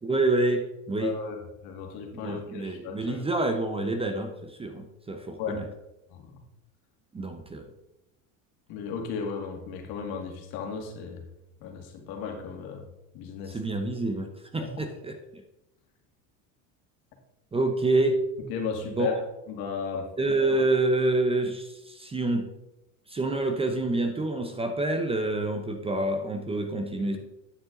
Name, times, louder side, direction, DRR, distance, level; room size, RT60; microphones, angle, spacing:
voice 1, 0.0-1.1 2.1-5.6 7.1-7.6 13.5-15.4 17.5-18.2 19.0-19.2 20.2-22.5 23.1-27.2, right 2 dB, 15° right, 5 dB, 0.7 m, -27 dB
voice 2, 1.0-3.2 5.4-5.7 6.1-6.4 8.7-11.2 11.6-12.8 13.1-13.6 14.6-14.9 18.5-20.1 20.5-20.7 27.1-27.2, left 6 dB, 65° left, 3 dB, 2.0 m, -35 dB
9.6 x 6.1 x 3.8 m, 0.91 s
supercardioid pair, 125°, 40 cm